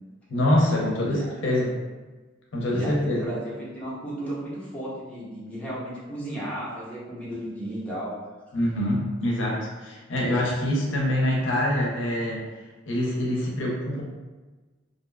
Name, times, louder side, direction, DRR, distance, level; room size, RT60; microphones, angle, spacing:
voice 1, 0.3-1.8 2.5-3.3 8.5-12.4 12.9-14.0, left 1 dB, 70° left, -3 dB, 0.5 m, -25 dB
voice 2, 2.7-8.1 8.5-8.6, right 1 dB, 5° left, -9 dB, 0.6 m, -34 dB
2.5 x 2.2 x 2.2 m, 1.2 s
head